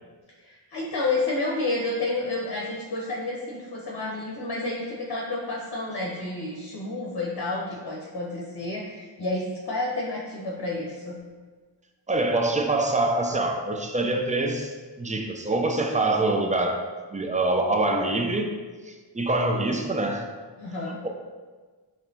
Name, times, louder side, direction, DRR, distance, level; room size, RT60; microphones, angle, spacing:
voice 1, 0.4-11.2 20.6-21.0, left 2 dB, 55° left, -3 dB, 0.7 m, -30 dB
voice 2, 12.1-18.5 18.9-20.3, right 2 dB, 15° right, 3 dB, 0.4 m, -25 dB
4.2 x 3.1 x 2.7 m, 1.4 s
cardioid pair, 40°, 45 cm